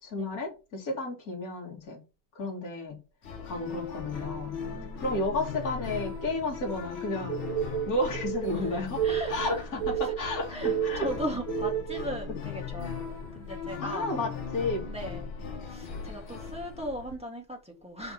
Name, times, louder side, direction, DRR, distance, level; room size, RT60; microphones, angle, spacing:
voice 1, 0.0-2.0 2.3-3.0 3.4-4.6 5.0-7.4 7.9-11.1 13.8-14.8, left 2 dB, 40° left, 2.9 m, -32 dB
sound 1, 3.2-17.1, left 6 dB, 65° left, 2.3 m, -38 dB
voice 2, 4.6-5.2 8.5-9.6 9.9-14.1 14.8-15.3 15.7-18.1, equal, 5° right, 2.2 m, -39 dB
sound 2, 7.3-12.1, right 11 dB, 85° right, 1.7 m, -32 dB
5.6 x 5.4 x 5.6 m
omnidirectional pair, 2.4 m